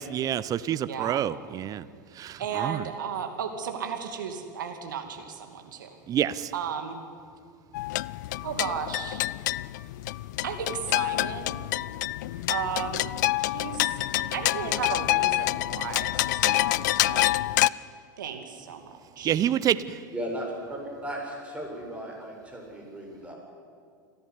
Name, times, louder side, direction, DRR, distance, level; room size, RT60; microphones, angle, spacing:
voice 1, 0.0-1.8 2.2-2.8 6.1-6.5 14.2-14.3 19.2-20.0, right 10 dB, 35° right, 17 dB, 0.8 m, -27 dB
voice 2, 0.8-1.2 2.4-6.0 6.5-7.0 8.4-9.2 10.4-11.6 12.5-13.1 13.4-14.0 14.3-17.5 18.2-19.4, right 7 dB, 75° right, 6 dB, 2.6 m, -34 dB
sound 1, 7.7-17.7, left 17 dB, 65° left, 0.4 m, -27 dB
voice 3, 20.1-23.4, right 1 dB, 10° right, -1 dB, 7.3 m, -36 dB
28.0 x 11.0 x 9.7 m, 2.2 s
hypercardioid pair, 90°, 10 cm